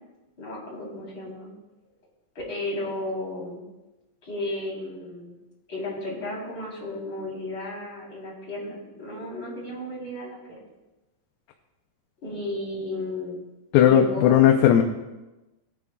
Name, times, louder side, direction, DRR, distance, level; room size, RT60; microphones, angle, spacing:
voice 1, 0.4-1.5 2.4-3.6 4.2-5.3 5.7-10.6 12.2-13.4 13.7-14.5, left 1 dB, 25° left, -4 dB, 3.5 m, -33 dB
voice 2, 13.7-14.8, left 10 dB, 85° left, 3 dB, 3.4 m, -16 dB
19.0 x 10.5 x 2.3 m, 1.0 s
omnidirectional pair, 5.9 m